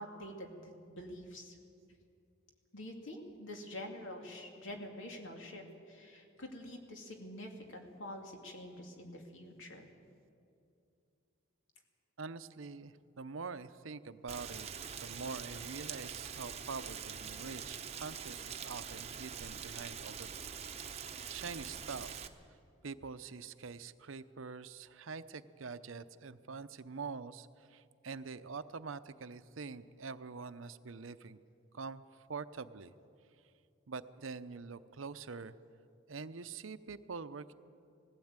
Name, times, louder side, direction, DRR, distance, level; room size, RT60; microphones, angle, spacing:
voice 1, 0.0-1.6 2.7-9.9, left 1 dB, 70° left, 2 dB, 2.7 m, -47 dB
voice 2, 12.2-14.7 15.0-20.4 21.3-22.2 22.8-31.4 31.7-32.9 33.9-35.5 36.1-37.5, right 4 dB, 80° right, 13 dB, 0.7 m, -45 dB
Rain, 14.3-22.3, right 7 dB, 30° right, 0.9 m, -44 dB
19.5 x 15.5 x 8.9 m, 2.5 s
head